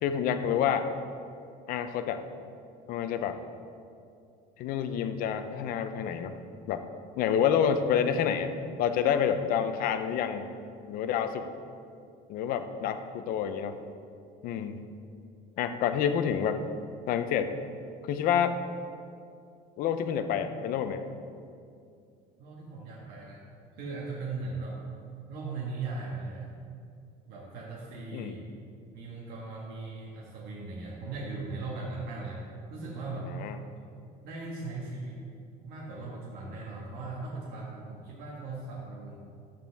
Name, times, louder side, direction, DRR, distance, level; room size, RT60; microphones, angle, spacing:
voice 1, 0.0-0.9 1.7-2.2 2.9-3.4 4.6-6.4 6.7-6.8 7.1-8.5 8.8-10.5 10.9-11.5 12.3-13.8 14.4-14.9 15.6-16.6 17.1-17.5 18.0-18.6 19.8-21.0 28.1-28.3 33.3-33.6, left 8 dB, 60° left, 9 dB, 0.7 m, -28 dB
voice 2, 22.4-23.4 23.7-24.8 25.3-26.5 27.3-28.4 28.9-32.4 32.7-33.3 34.2-35.2 35.6-39.2, right 3 dB, 65° right, -5 dB, 1.7 m, -38 dB
11.5 x 8.8 x 3.5 m, 2.4 s
cardioid pair, 150°, 17 cm